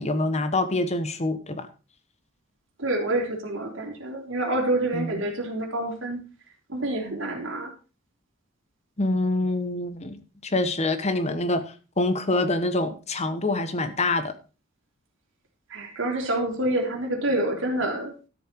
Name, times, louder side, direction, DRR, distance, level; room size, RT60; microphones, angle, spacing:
voice 1, 0.0-1.7 4.9-5.1 9.0-14.3, left 2 dB, 35° left, 10 dB, 1.2 m, -26 dB
voice 2, 2.8-6.2 6.7-7.7 15.7-18.1, right 1 dB, 70° right, 2 dB, 3.5 m, -27 dB
13.0 x 7.3 x 4.6 m, 0.33 s
head